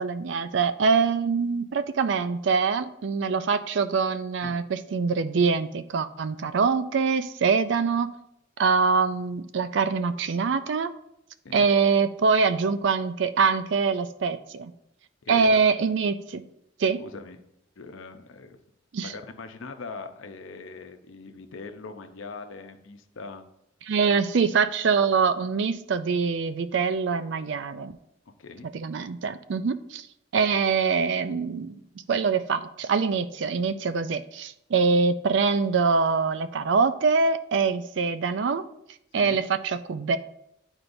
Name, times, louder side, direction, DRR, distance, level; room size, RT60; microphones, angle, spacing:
voice 1, 0.0-8.1 8.6-10.9 11.5-14.7 15.3-16.4 16.8-17.0 18.9-19.1 23.9-28.0 28.7-30.1 30.3-31.8 32.1-38.7 39.1-40.2, right 5 dB, 65° right, 12 dB, 0.4 m, -24 dB
voice 2, 15.2-15.7 17.0-17.4 17.8-18.6 19.0-23.4 28.4-28.7 39.1-39.4, left 4 dB, 80° left, 7 dB, 0.6 m, -41 dB
9.5 x 4.4 x 2.6 m, 0.80 s
head